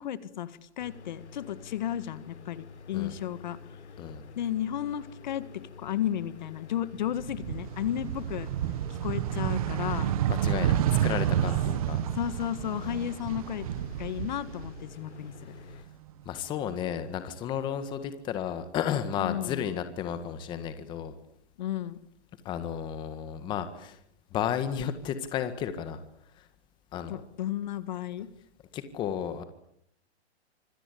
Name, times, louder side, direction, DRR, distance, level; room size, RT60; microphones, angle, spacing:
voice 1, 0.0-3.6 4.3-8.5 8.9-10.2 12.1-13.7 14.0-15.5 19.2-19.7 21.6-22.0 27.1-28.3, left 11 dB, 40° left, 14 dB, 1.7 m, -33 dB
sound 1, 0.8-15.8, left 5 dB, 80° left, 4.3 m, -48 dB
sound 2, 7.1-15.2 15.5-16.7, right 11 dB, 35° right, 1.3 m, -30 dB
voice 2, 10.3-12.0 12.8-13.0 16.2-21.1 22.4-24.0 24.3-26.0 26.4-26.5 26.9-27.2 28.7-29.4, left 9 dB, 15° left, 10 dB, 1.7 m, -33 dB
26.0 x 26.0 x 8.5 m, 0.71 s
hypercardioid pair, 170°, 33 cm